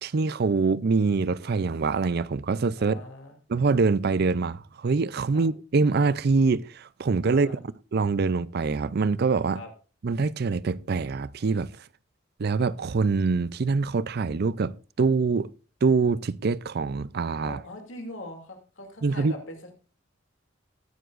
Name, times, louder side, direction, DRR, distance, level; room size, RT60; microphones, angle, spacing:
voice 1, 0.0-3.0 3.5-7.6 7.9-9.6 10.0-11.7 12.4-15.5 15.8-17.6 19.0-19.3, right 4 dB, 55° right, 0.5 m, -24 dB
voice 2, 2.8-3.4 5.3-5.5 7.3-7.6 9.5-9.7 17.4-19.7, left 2 dB, 75° left, 2.6 m, -41 dB
19.5 x 9.5 x 2.5 m
head